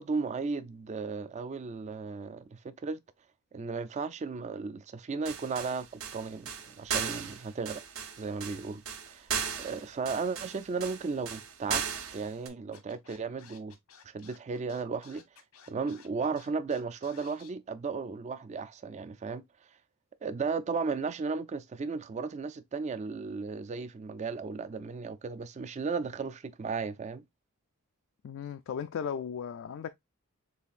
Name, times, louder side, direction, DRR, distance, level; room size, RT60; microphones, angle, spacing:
voice 1, 0.0-3.0 3.5-7.8 8.2-9.3 9.6-11.8 12.1-13.8 14.1-15.2 15.7-19.4 20.2-27.2, right 4 dB, 30° right, 0.3 m, -35 dB
sound 1, 5.2-12.5, right 7 dB, 70° right, 0.7 m, -36 dB
Scratching (performance technique), 12.7-17.5, left 7 dB, 85° left, 1.1 m, -55 dB
voice 2, 28.2-29.9, left 7 dB, 60° left, 0.3 m, -36 dB
6.8 x 2.5 x 2.4 m
head